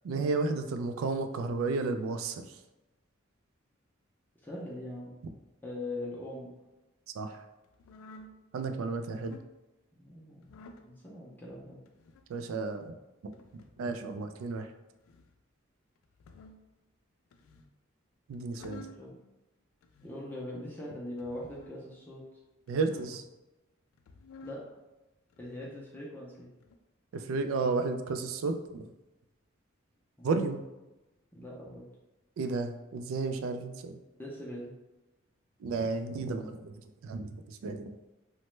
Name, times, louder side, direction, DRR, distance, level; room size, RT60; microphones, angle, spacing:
voice 1, 0.0-2.6 7.2-7.4 8.5-9.4 12.3-12.9 13.2-13.3 13.8-14.7 18.3-18.8 22.7-23.2 27.1-28.9 30.2-30.6 32.4-34.0 35.6-36.7 37.0-38.0, right 3 dB, 85° right, 7 dB, 0.3 m, -32 dB
voice 2, 4.4-5.1 5.6-6.5 9.9-10.5 10.8-11.8 18.9-19.2 20.0-22.2 24.4-24.6 25.4-26.5 30.2-30.4 31.3-31.8 34.1-34.7, left 1 dB, 10° left, -5 dB, 0.4 m, -41 dB
sound 1, 7.7-8.4 9.1-9.5 10.4-10.9 11.9-12.3 13.3-13.8 14.9-15.3 16.0-16.7 17.3-17.7 18.3-19.0 19.8-20.3 21.2-21.8 22.7-23.3 23.9-24.6 25.3-25.8 26.6-26.7, left 2 dB, 90° left, 0.3 m, -52 dB
3.0 x 2.1 x 3.1 m, 1.0 s
head